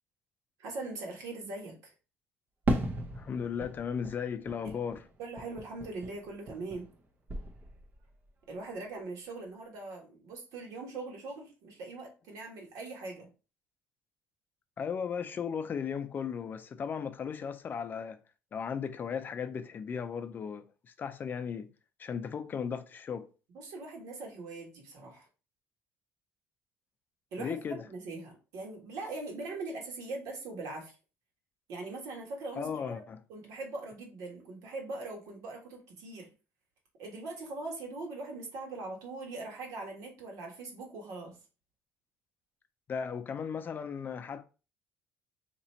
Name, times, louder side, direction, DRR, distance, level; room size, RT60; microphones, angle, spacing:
voice 1, 0.6-1.9 4.6-4.8 5.2-6.9 8.5-13.3 23.5-25.2 27.3-30.9 31.7-33.0 33.3-36.3 37.0-41.4, right 3 dB, 75° right, 1.5 m, -41 dB
Fireworks, 2.7-7.0 7.3-8.1, right 1 dB, 35° right, 0.7 m, -36 dB
voice 2, 3.2-5.0 14.8-18.2 18.5-21.7 22.0-23.3 27.4-27.8 32.6-33.2 42.9-44.4, left 7 dB, 35° left, 0.4 m, -36 dB
2.9 x 2.7 x 4.2 m
cardioid pair, 125°, 6 cm